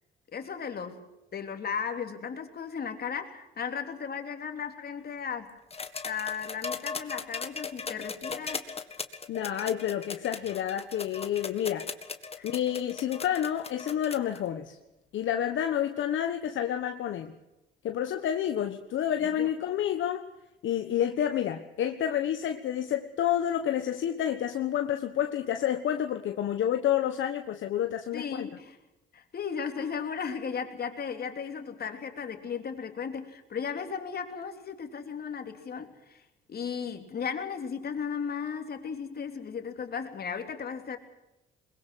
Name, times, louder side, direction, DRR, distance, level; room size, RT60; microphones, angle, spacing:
voice 1, 0.3-1.0 1.3-5.5 6.0-8.7 12.4-12.5 19.2-19.5 28.1-28.8 29.1-36.2 36.5-41.0, left 6 dB, 50° left, 5 dB, 3.3 m, -35 dB
sound 1, 5.7-14.4 15.6-15.7, left 5 dB, 30° left, 1.9 m, -38 dB
voice 2, 9.3-11.8 12.4-14.8 15.1-17.3 17.8-20.3 20.6-28.5, left 10 dB, 75° left, 6 dB, 1.3 m, -29 dB
22.0 x 21.5 x 6.4 m, 0.96 s
cardioid pair, 90°, 20 cm